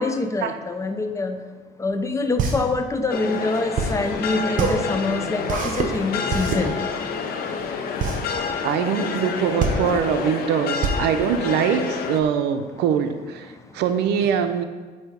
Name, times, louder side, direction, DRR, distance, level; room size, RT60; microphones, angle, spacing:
voice 1, 0.0-1.4 1.8-6.7, left 3 dB, 20° left, 7 dB, 0.5 m, -25 dB
sound 1, 1.9-12.2, right 4 dB, 50° right, 1.0 m, -26 dB
sound 2, 3.1-12.2, left 5 dB, 65° left, 0.6 m, -29 dB
voice 2, 8.6-14.6, right 8 dB, 80° right, 9 dB, 0.5 m, -23 dB
7.7 x 2.7 x 5.0 m, 1.4 s
cardioid pair, 110°, 17 cm